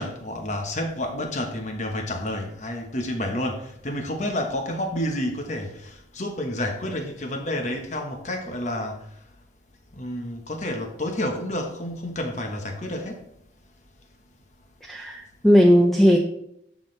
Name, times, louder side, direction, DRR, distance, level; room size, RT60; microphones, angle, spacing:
voice 1, 0.0-9.1 9.9-13.2, left 1 dB, 40° left, 1.2 m, -30 dB
voice 2, 14.8-16.2, equal, ahead, 0.6 m, -17 dB
11.0 x 6.1 x 3.3 m
head